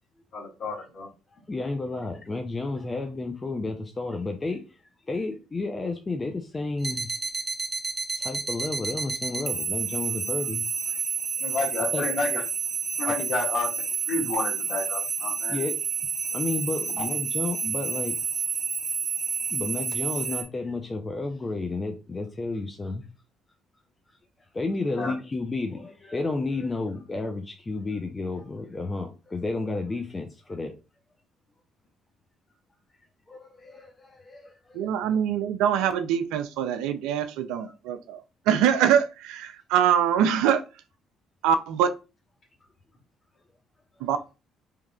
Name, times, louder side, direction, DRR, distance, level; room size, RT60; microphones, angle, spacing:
voice 1, 0.3-1.1 11.4-12.4 13.0-13.7 14.0-15.6 17.0-17.1 24.9-25.1, left 3 dB, 55° left, 1.6 m, -30 dB
voice 2, 1.5-4.8 5.1-7.1 8.2-11.0 11.9-12.1 15.5-15.8 16.3-18.2 19.5-23.1 24.5-30.7 33.3-34.8, left 3 dB, 30° left, 0.5 m, -31 dB
sound 1, 6.8-20.4, right 6 dB, 30° right, 0.6 m, -30 dB
voice 3, 34.7-40.6 41.4-41.9 44.0-44.2, right 9 dB, 75° right, 0.3 m, -24 dB
3.5 x 3.0 x 2.3 m
hypercardioid pair, 50°, 0 cm